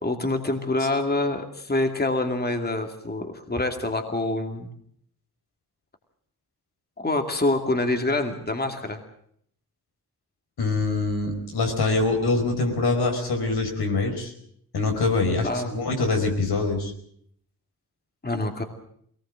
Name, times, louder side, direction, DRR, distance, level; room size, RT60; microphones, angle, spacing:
voice 1, 0.0-4.7 7.0-9.0 15.4-15.7 18.2-18.6, left 2 dB, 25° left, 5 dB, 2.5 m, -26 dB
voice 2, 10.6-14.3 14.7-16.9, left 3 dB, 85° left, 3 dB, 5.0 m, -24 dB
21.5 x 19.0 x 7.6 m, 0.66 s
cardioid pair, 80°, 38 cm